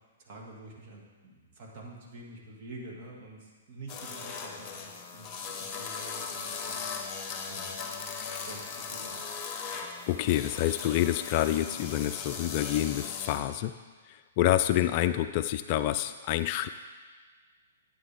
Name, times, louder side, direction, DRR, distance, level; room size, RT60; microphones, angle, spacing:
voice 1, 0.2-6.8 7.5-7.7 8.3-9.3 14.4-14.9, right 2 dB, 40° right, -2 dB, 2.2 m, -48 dB
sound 1, 3.9-13.4, left 5 dB, 20° left, 1.1 m, -38 dB
voice 2, 10.1-13.7 14.1-16.7, left 13 dB, 40° left, 11 dB, 0.3 m, -27 dB
11.0 x 8.7 x 3.6 m, 1.5 s
figure-of-eight pair, 115°, 0 cm